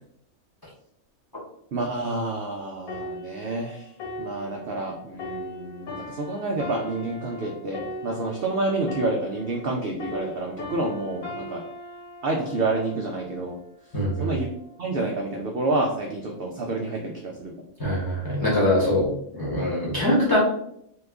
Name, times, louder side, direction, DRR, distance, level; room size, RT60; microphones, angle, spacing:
voice 1, 1.7-3.9 4.2-11.6 12.2-13.6 14.2-14.5 14.8-17.7, right 2 dB, 65° right, 0 dB, 0.6 m, -28 dB
sound 1, 2.9-9.7 10.0-13.6 14.2-14.4, left 1 dB, 85° left, 1.7 m, -39 dB
voice 2, 13.9-14.3 17.8-20.4, left 1 dB, 20° left, -7 dB, 1.0 m, -23 dB
2.9 x 2.3 x 3.4 m, 0.72 s
omnidirectional pair, 1.4 m